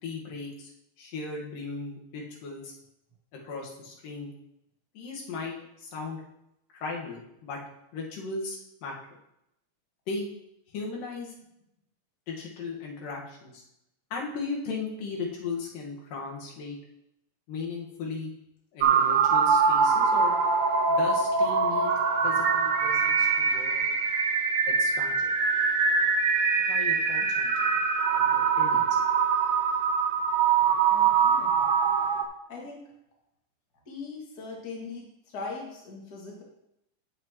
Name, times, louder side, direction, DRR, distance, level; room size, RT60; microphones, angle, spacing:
voice 1, 0.0-0.7 1.0-2.7 3.4-4.3 4.9-6.2 6.7-7.6 7.9-8.9 10.1-10.3 10.7-11.3 12.3-13.6 14.1-16.8 17.5-18.3 18.7-20.3 20.9-21.9 22.2-23.8 24.7-25.3 26.7-27.8 28.1-28.9, left 4 dB, 85° left, -2 dB, 3.4 m, -37 dB
sound 1, 18.8-32.2, right 5 dB, 75° right, 1.3 m, -23 dB
voice 2, 30.9-31.7 32.5-32.8 33.9-36.4, left 4 dB, 30° left, -3 dB, 2.3 m, -40 dB
17.5 x 6.1 x 3.1 m, 0.81 s
omnidirectional pair, 3.7 m